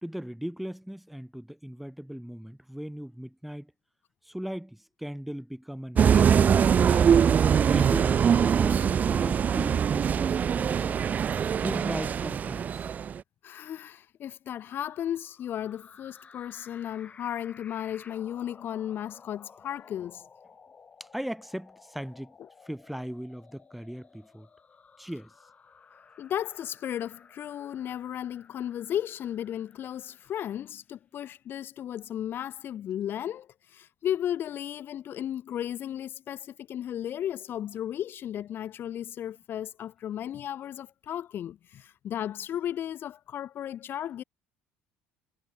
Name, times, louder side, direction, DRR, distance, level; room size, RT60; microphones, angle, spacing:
voice 1, 0.0-3.7 4.3-7.2 7.7-11.0 11.6-12.8 21.0-22.4 22.7-24.5 25.0-25.3, equal, ahead, 1.8 m, -38 dB
sound 1, 6.0-13.2, right 7 dB, 35° right, 0.3 m, -23 dB
voice 2, 13.4-20.2 26.2-44.2, left 10 dB, 50° left, 0.7 m, -35 dB
sound 2, 15.1-30.8, left 5 dB, 30° left, 1.7 m, -55 dB
supercardioid pair, 80°, 5 cm